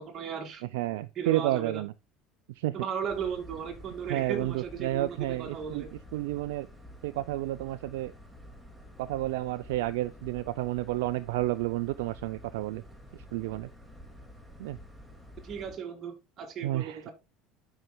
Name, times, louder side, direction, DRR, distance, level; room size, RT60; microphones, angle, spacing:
voice 1, 0.0-0.6 1.1-1.8 2.7-5.9 15.4-17.1, right 7 dB, 45° right, 2.4 m, -36 dB
voice 2, 0.7-1.9 2.6-2.7 4.1-5.9 6.1-6.7 7.0-8.1 9.0-12.8 13.3-13.7 14.6-14.8 16.6-17.0, right 16 dB, 80° right, 0.4 m, -31 dB
sound 1, 3.1-15.8, equal, 5° right, 2.1 m, -50 dB
12.0 x 5.6 x 2.2 m
supercardioid pair, 90°, 0 cm